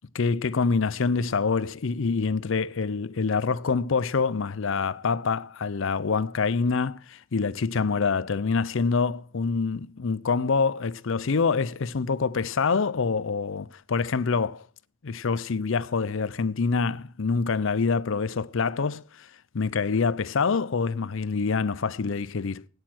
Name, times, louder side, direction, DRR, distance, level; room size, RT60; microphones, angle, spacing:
voice 1, 0.1-14.6 15.0-19.3 19.5-22.6, left 4 dB, 65° left, 0.6 m, -26 dB
13.0 x 9.7 x 6.1 m
head